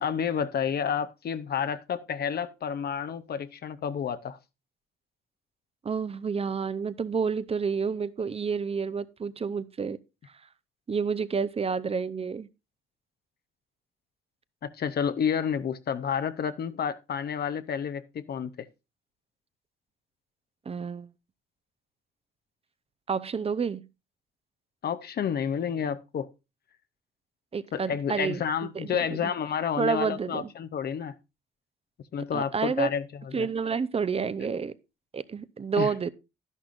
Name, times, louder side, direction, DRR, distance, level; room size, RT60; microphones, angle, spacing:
voice 1, 0.0-4.4 14.6-18.7 24.8-26.3 27.7-31.1 32.1-33.0 33.3-33.5 35.8-35.9, left 7 dB, 55° left, 0.7 m, -30 dB
voice 2, 5.8-10.0 10.9-12.5 20.7-21.1 23.1-23.8 27.5-28.4 28.7-29.3 29.8-30.5 32.3-32.9 33.3-34.7 35.1-36.1, right 5 dB, 30° right, 0.6 m, -29 dB
11.5 x 11.0 x 2.5 m
cardioid pair, 90°, 20 cm